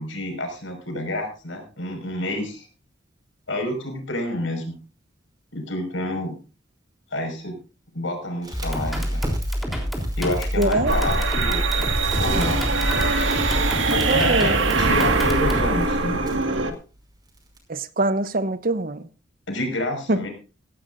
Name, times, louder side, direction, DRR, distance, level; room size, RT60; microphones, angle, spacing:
voice 1, 0.0-2.7 3.5-4.8 5.5-6.3 7.1-7.6 7.9-9.2 10.2-11.9 12.2-12.6 13.9-16.3 19.5-20.3, left 1 dB, 85° left, 5.4 m, -28 dB
Crackle, 8.4-17.6, right 1 dB, 20° right, 5.6 m, -42 dB
sound 1, 8.5-15.7, equal, ahead, 3.5 m, -27 dB
voice 2, 10.6-10.9 14.1-14.6 17.7-19.0 20.1-20.2, right 2 dB, 50° right, 0.8 m, -23 dB
sound 2, 10.9-16.7, right 3 dB, 80° right, 1.9 m, -22 dB
16.5 x 15.5 x 2.6 m
head